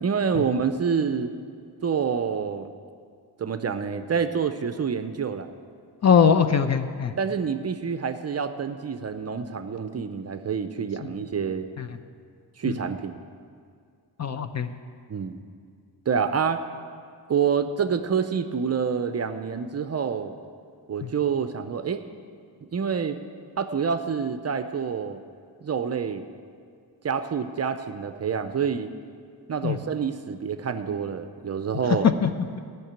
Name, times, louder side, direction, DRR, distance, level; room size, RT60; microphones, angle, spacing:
voice 1, 0.0-1.3 1.8-2.7 3.4-5.5 7.2-11.7 12.6-13.2 15.1-15.4 16.1-16.7 17.3-20.3 20.9-22.0 22.7-23.2 23.6-25.2 25.6-26.2 27.0-28.9 29.5-32.1, right 6 dB, 40° right, 9 dB, 0.6 m, -27 dB
voice 2, 6.0-7.1 11.8-11.9 14.2-14.7 21.0-21.1 29.6-29.8 32.2-32.3, left 7 dB, 40° left, 10 dB, 0.6 m, -21 dB
14.0 x 5.9 x 8.7 m, 2.2 s
wide cardioid pair, 120°, 42 cm